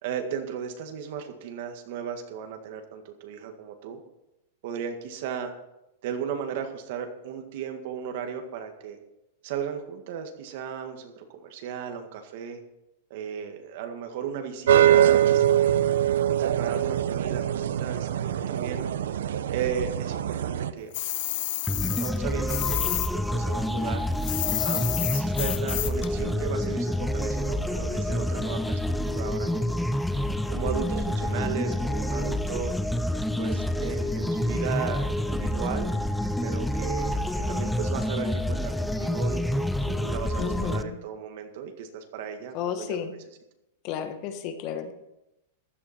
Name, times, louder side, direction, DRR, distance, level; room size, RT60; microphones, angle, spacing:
voice 1, 0.0-4.0 4.6-5.5 6.0-9.0 9.4-12.6 13.1-15.8 16.4-18.9 19.5-21.0 22.0-24.1 24.6-29.8 30.5-32.7 33.4-35.9 36.4-43.2, right 7 dB, 55° right, 6 dB, 1.8 m, -35 dB
sound 1, 14.7-20.7, right 11 dB, 85° right, 0.7 m, -23 dB
sound 2, 20.9-23.1 23.4-26.1, left 16 dB, 55° left, 0.7 m, -30 dB
sound 3, 21.7-40.8, left 1 dB, ahead, 0.5 m, -28 dB
voice 2, 40.4-41.0 42.5-43.1 43.8-44.9, left 8 dB, 40° left, 8 dB, 1.3 m, -32 dB
15.0 x 11.5 x 4.4 m, 0.92 s
supercardioid pair, 160°, 0 cm